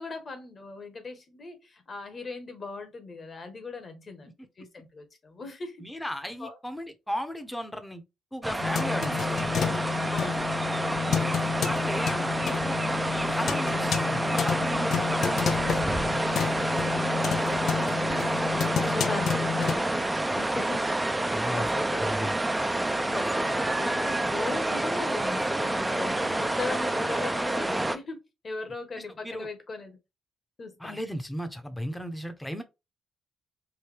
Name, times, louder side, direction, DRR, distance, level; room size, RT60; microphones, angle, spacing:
voice 1, 0.0-6.0 6.3-6.5 10.1-11.1 12.0-12.2 17.0-22.1 22.5-28.2 28.4-30.0 30.6-31.0, left 3 dB, 40° left, 1.4 m, -39 dB
voice 2, 5.8-8.0 8.3-9.8 11.7-12.1 12.4-12.8 13.1-16.2 21.3-21.7 22.0-22.3 29.0-29.5 30.8-32.6, equal, 5° left, 0.9 m, -36 dB
sound 1, 8.4-28.0, right 1 dB, 10° right, 0.6 m, -28 dB
sound 2, 8.6-19.8, left 7 dB, 65° left, 0.5 m, -30 dB
4.7 x 2.6 x 3.4 m
cardioid pair, 90°, 0 cm